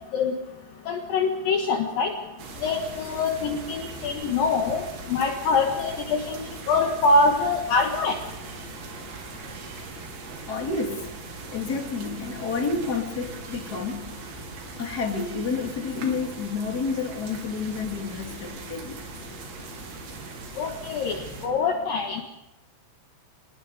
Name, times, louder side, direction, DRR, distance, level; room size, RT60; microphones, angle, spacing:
voice 1, 0.9-2.1 2.6-6.4 6.7-8.2 20.6-22.2, left 3 dB, 60° left, 3 dB, 2.8 m, -24 dB
sound 1, 2.4-21.5, right 4 dB, 80° right, 5.2 m, -40 dB
voice 2, 10.5-11.2 11.5-14.2 14.8-19.1, left 4 dB, 25° left, 2 dB, 2.4 m, -30 dB
27.0 x 20.5 x 5.0 m, 0.97 s
omnidirectional pair, 5.1 m